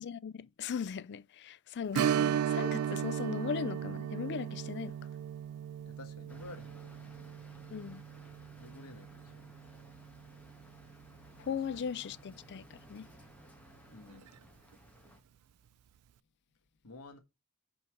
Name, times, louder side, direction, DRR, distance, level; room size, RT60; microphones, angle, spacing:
voice 1, 0.0-5.0 7.7-8.0 11.4-13.1, left 7 dB, 50° left, 0.3 m, -38 dB
Strum, 1.9-11.1 11.5-11.6 14.1-14.3 14.7-14.8, right 9 dB, 80° right, 0.3 m, -36 dB
voice 2, 5.8-7.1 8.6-9.9 11.7-12.1 13.9-14.3 16.8-17.2, left 2 dB, 90° left, 1.4 m, -52 dB
sound 1, 6.3-15.2, left 1 dB, 5° left, 1.6 m, -58 dB
5.2 x 4.5 x 6.2 m
head